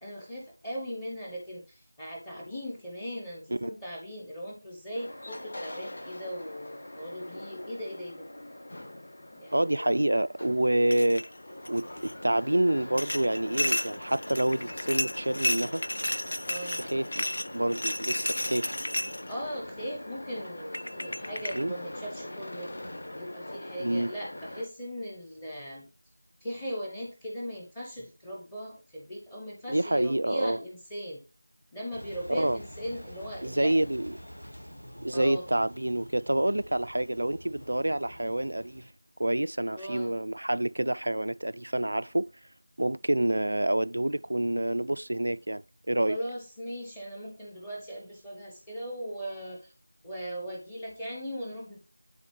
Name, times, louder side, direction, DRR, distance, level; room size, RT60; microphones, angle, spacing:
voice 1, 0.0-8.3 9.3-9.9 16.5-16.9 19.3-22.7 23.1-25.9 26.4-31.2 31.7-33.9 35.1-35.5 39.7-40.2 46.1-49.7 50.0-51.8, equal, 5° left, 0.7 m, -39 dB
sound 1, 4.9-24.6, left 1 dB, 35° left, 1.0 m, -43 dB
voice 2, 9.5-11.2 11.7-15.8 16.8-17.3 17.5-18.8 21.5-21.7 23.8-24.1 29.7-30.6 32.3-32.6 33.4-34.1 35.0-38.8 39.2-42.3 42.8-46.2, right 1 dB, 50° right, 0.3 m, -27 dB
sound 2, 10.9-11.3 11.6-12.1 13.0-19.3 20.3-20.4 20.7-21.6, left 1 dB, 60° left, 0.4 m, -32 dB
Engine, 31.9-38.9, equal, 80° left, 0.9 m, -47 dB
10.5 x 4.0 x 3.1 m
figure-of-eight pair, 170°, 0 cm